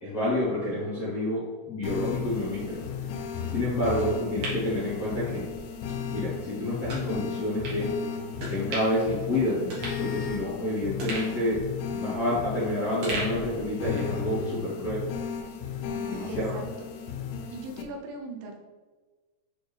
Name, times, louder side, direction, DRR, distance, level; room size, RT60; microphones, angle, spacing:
voice 1, 0.0-2.8 3.5-5.4 6.1-7.9 8.5-11.6 11.9-15.0 16.1-16.5, left 1 dB, 60° left, -10 dB, 1.6 m, -29 dB
sound 1, 1.8-17.8, left 7 dB, 90° left, 2.3 m, -35 dB
sound 2, 4.0-5.6 6.0-6.1 6.9-7.1 7.6-7.8 8.4-9.1 9.4-9.5 9.7-10.6 11.0-12.6 13.0-14.2 14.5-14.6, right 1 dB, 65° right, 1.5 m, -37 dB
voice 2, 16.3-16.7 17.0-17.1 17.5-18.6, right 2 dB, 85° right, 2 dB, 3.3 m, -39 dB
8.3 x 4.1 x 3.4 m, 1.3 s
omnidirectional pair, 5.4 m